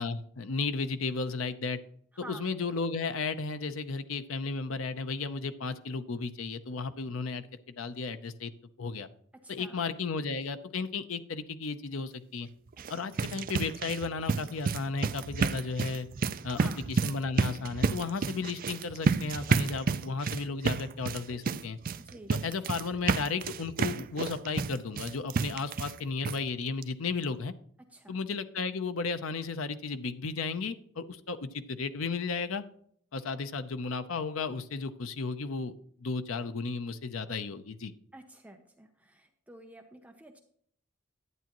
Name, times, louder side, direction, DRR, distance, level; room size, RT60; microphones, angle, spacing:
voice 1, 0.0-1.8 2.3-7.4 7.8-8.5 8.8-9.1 9.5-12.5 12.9-16.1 16.4-16.6 17.0-21.8 22.4-27.5 28.1-32.6 33.1-35.7 36.0-37.9, left 4 dB, 85° left, 11 dB, 0.6 m, -34 dB
voice 2, 2.1-2.4 9.4-9.8 12.8-13.1 16.4-16.8 22.0-22.4 27.9-28.2 38.1-40.4, right 1 dB, 5° right, 4 dB, 0.7 m, -50 dB
sound 1, 12.7-26.0 26.2-26.4 26.8-26.9 27.2-27.3, right 5 dB, 45° right, 0.4 m, -31 dB
11.0 x 9.1 x 3.0 m, 0.63 s
head